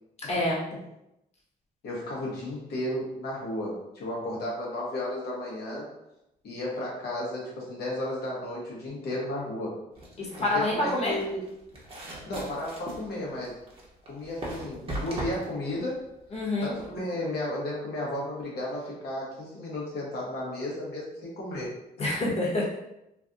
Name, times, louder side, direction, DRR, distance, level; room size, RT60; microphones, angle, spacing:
voice 1, 0.3-0.6 10.2-11.1 16.3-16.7 22.0-22.6, left 1 dB, 40° left, -5 dB, 1.3 m, -27 dB
voice 2, 1.8-5.9 6.4-9.8 10.4-11.4 12.3-13.6 14.1-16.1 16.6-21.7 22.0-22.1, left 1 dB, 70° left, -4 dB, 1.2 m, -33 dB
sound 1, 10.0-17.0, right 1 dB, 35° right, 1.1 m, -39 dB
3.3 x 2.4 x 2.6 m, 0.86 s
cardioid pair, 80°, 17 cm